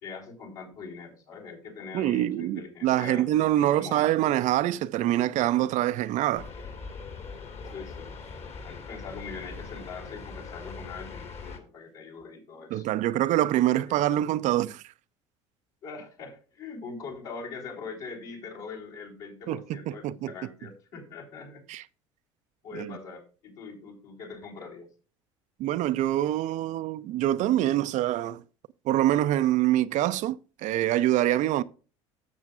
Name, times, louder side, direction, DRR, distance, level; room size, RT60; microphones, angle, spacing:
voice 1, 0.0-3.3 3.5-4.1 7.7-8.1 8.6-12.9 13.8-14.0 15.8-21.6 22.6-24.9, left 4 dB, 65° left, 3.6 m, -42 dB
voice 2, 1.9-6.5 12.7-14.8 19.5-20.3 21.7-21.8 22.7-22.9 25.6-28.4 28.9-31.6, right 13 dB, 55° right, 0.5 m, -25 dB
sound 1, 6.3-11.6, left 4 dB, 45° left, 1.9 m, -41 dB
12.5 x 7.2 x 2.4 m
hypercardioid pair, 65°, 15 cm